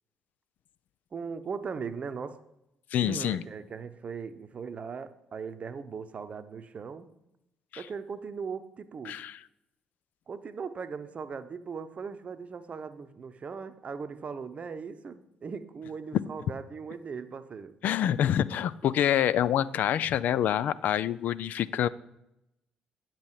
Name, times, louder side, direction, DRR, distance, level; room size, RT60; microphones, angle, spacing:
voice 1, 1.1-2.4 3.0-7.1 7.8-9.2 10.3-17.7, right 5 dB, 40° right, 12 dB, 0.8 m, -39 dB
voice 2, 2.9-3.4 7.7-7.8 9.0-9.4 17.8-21.9, left 10 dB, 55° left, 16 dB, 0.4 m, -26 dB
9.1 x 7.5 x 4.7 m, 0.86 s
figure-of-eight pair, 45°, 3 cm